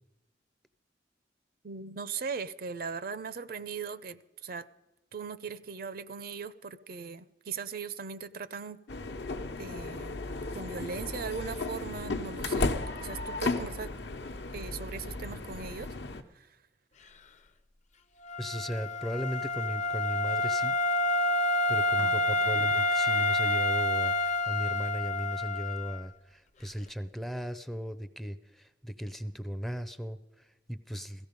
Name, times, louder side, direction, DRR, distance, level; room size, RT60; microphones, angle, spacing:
voice 1, 1.6-4.7 5.1-8.8 9.6-10.2 10.5-12.7 13.0-13.9 14.5-15.9 16.3-16.5 22.0-22.5, right 5 dB, 55° right, 0.6 m, -39 dB
sound 1, 8.9-16.2, left 3 dB, 75° left, 1.0 m, -35 dB
Wind instrument woodwind instrument, 18.2-26.0, left 2 dB, 40° left, 0.7 m, -28 dB
voice 2, 18.4-20.8 21.7-31.3, equal, ahead, 0.5 m, -36 dB
17.0 x 15.0 x 5.2 m
head